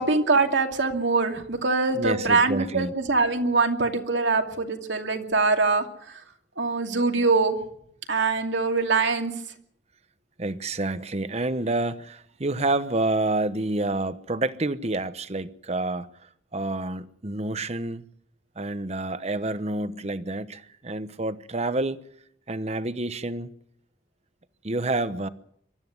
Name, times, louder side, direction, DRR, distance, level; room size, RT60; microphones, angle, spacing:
voice 1, 0.0-6.2 6.6-7.6 8.1-9.3, right 3 dB, 80° right, 2.7 m, -23 dB
voice 2, 1.9-2.9 10.4-16.1 16.5-18.0 18.6-22.0 22.5-23.5 24.6-25.3, right 2 dB, 35° right, 1.0 m, -28 dB
23.5 x 13.0 x 9.6 m
head